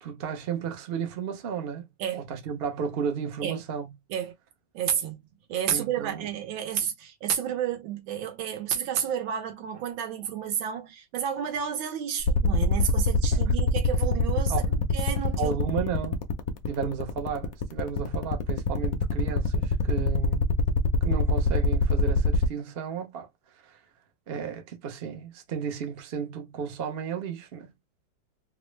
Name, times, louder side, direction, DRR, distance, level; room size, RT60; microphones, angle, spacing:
voice 1, 0.0-1.9 2.1-3.9 5.7-6.3 13.3-13.4 14.5-14.7 15.4-16.2 16.7-20.5 21.0-23.3 23.5-23.8 24.3-27.7, right 7 dB, 65° right, 0.6 m, -33 dB
voice 2, 4.7-5.2 5.5-14.6 14.9-15.5, right 9 dB, 80° right, 1.6 m, -31 dB
sound 1, 12.3-22.5, left 7 dB, 70° left, 0.8 m, -23 dB
3.6 x 2.0 x 3.1 m
omnidirectional pair, 2.1 m